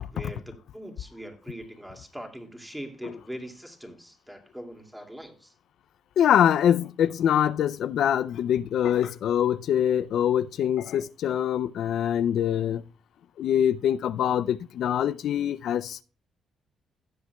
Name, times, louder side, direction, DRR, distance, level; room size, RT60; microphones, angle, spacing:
voice 1, 0.0-5.5, equal, 5° right, 2.3 m, -41 dB
voice 2, 6.2-12.8 13.4-16.0, left 9 dB, 70° left, 0.4 m, -24 dB
17.0 x 7.3 x 2.2 m
cardioid pair, 90°, 0 cm